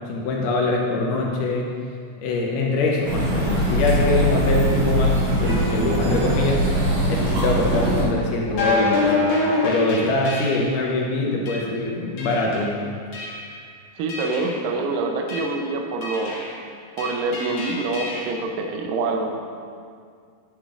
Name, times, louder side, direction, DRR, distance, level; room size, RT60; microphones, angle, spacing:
voice 1, 0.1-1.7 2.2-9.3 9.6-12.8, left 2 dB, 80° left, -2 dB, 1.9 m, -23 dB
sound 1, 3.0-8.0, equal, 45° right, 2.4 m, -21 dB
sound 2, 8.5-10.8 11.5-11.7 12.2-12.7 13.1-13.6 14.1-14.6 15.3-15.6 16.0-16.5 17.0-18.3, left 2 dB, 60° left, 1.9 m, -26 dB
voice 2, 14.0-16.4 17.0-19.4, right 3 dB, 80° right, 3 dB, 2.1 m, -26 dB
11.0 x 7.2 x 2.4 m, 2.2 s
omnidirectional pair, 4.4 m